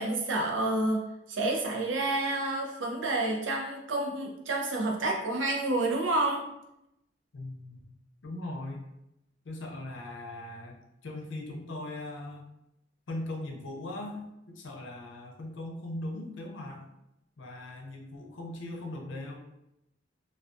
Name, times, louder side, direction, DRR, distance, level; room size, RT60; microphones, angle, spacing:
voice 1, 0.0-6.4, right 2 dB, 85° right, 1 dB, 0.5 m, -29 dB
voice 2, 7.3-8.0 8.2-8.8 9.4-10.8 11.0-12.4 13.1-16.8 17.4-19.4, left 1 dB, 80° left, 1 dB, 0.5 m, -39 dB
2.3 x 2.3 x 2.4 m, 0.85 s
head